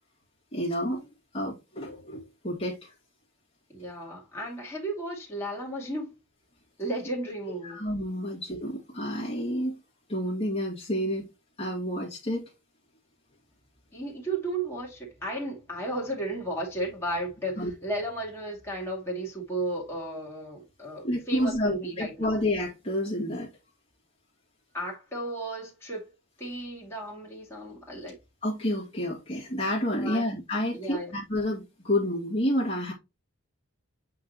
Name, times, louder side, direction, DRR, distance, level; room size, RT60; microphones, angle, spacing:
voice 1, 0.5-1.0 1.3-2.9 7.6-9.8 10.1-11.3 11.6-12.5 17.6-17.7 21.0-23.5 28.4-32.9, left 1 dB, 25° left, 2.1 m, -29 dB
voice 2, 3.7-6.1 6.8-7.8 13.9-22.4 24.7-26.1 26.4-28.2 30.0-30.3 30.7-31.2, right 1 dB, 10° left, 2.4 m, -34 dB
8.4 x 3.8 x 3.0 m
head